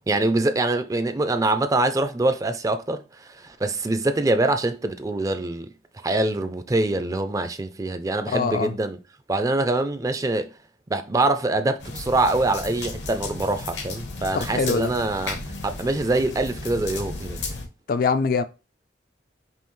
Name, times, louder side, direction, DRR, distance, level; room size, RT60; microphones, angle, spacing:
voice 1, 0.0-3.0 3.4-5.7 6.0-9.0 9.3-10.5 10.9-17.4, right 2 dB, 20° right, 0.4 m, -24 dB
voice 2, 8.3-8.7 14.3-14.9 17.9-18.4, left 5 dB, 55° left, 0.4 m, -23 dB
sound 1, 11.8-17.7, left 3 dB, 80° left, 0.9 m, -34 dB
5.5 x 2.3 x 3.1 m
head